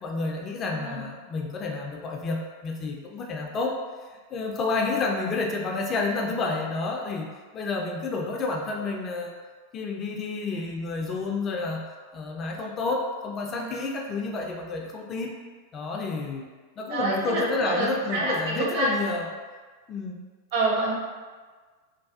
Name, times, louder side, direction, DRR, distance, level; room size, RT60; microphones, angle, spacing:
voice 1, 0.0-3.8 4.3-9.3 9.7-11.8 12.1-15.4 15.7-16.5 16.8-19.3 19.9-20.2, left 3 dB, 25° left, 1 dB, 0.3 m, -30 dB
voice 2, 0.7-1.1 8.2-8.3 13.5-13.8 16.9-18.9 20.5-20.9, right 2 dB, 50° right, -5 dB, 0.8 m, -28 dB
3.1 x 2.3 x 2.4 m, 1.4 s
figure-of-eight pair, 90°, 0 cm